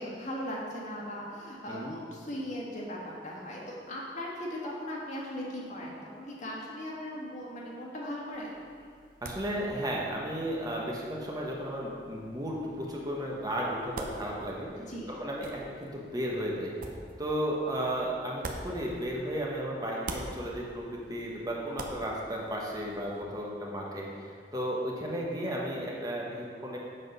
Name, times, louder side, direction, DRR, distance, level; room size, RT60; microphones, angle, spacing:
voice 1, 0.0-8.6 14.9-15.1, equal, 45° left, -3 dB, 1.6 m, -38 dB
sound 1, 8.3-19.5 19.8-23.2, right 2 dB, 50° right, 0.7 m, -47 dB
voice 2, 9.2-14.7 15.1-16.7 17.2-26.8, equal, 20° right, -3 dB, 1.0 m, -34 dB
7.6 x 6.0 x 5.3 m, 2.2 s
head